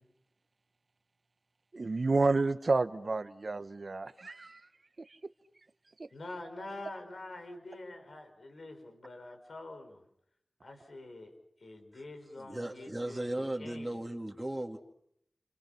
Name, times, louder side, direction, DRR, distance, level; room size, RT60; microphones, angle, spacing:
voice 1, 1.7-4.6, right 3 dB, 65° right, 1.1 m, -30 dB
voice 2, 6.1-10.0 10.6-11.3 11.6-14.0, left 2 dB, 85° left, 5.7 m, -46 dB
voice 3, 12.4-14.8, right 1 dB, 20° right, 2.6 m, -36 dB
30.0 x 28.5 x 6.0 m
cardioid pair, 45°, 0 cm